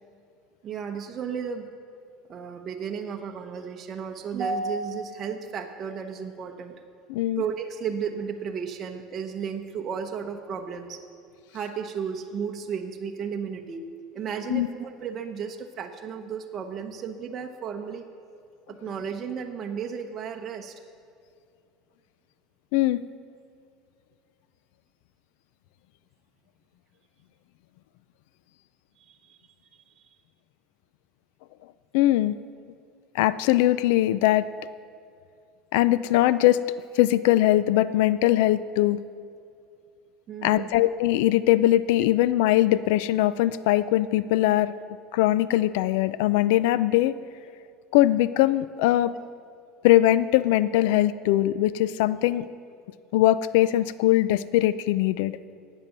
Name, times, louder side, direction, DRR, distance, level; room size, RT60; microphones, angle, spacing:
voice 1, 0.6-1.7 2.3-6.8 7.4-11.0 11.5-13.9 14.1-18.1 18.7-20.7 29.0-29.4 30.0-30.1 40.3-40.7, right 6 dB, 35° right, 3 dB, 0.8 m, -33 dB
voice 2, 7.1-7.4 14.5-14.7 22.7-23.0 31.9-32.3 33.1-34.5 35.7-36.7 36.9-39.0 40.4-44.7 45.1-47.1 47.9-49.1 49.8-52.4 53.1-55.3, left 14 dB, 80° left, 16 dB, 0.3 m, -21 dB
12.0 x 9.0 x 6.7 m, 2.4 s
supercardioid pair, 130°, 0 cm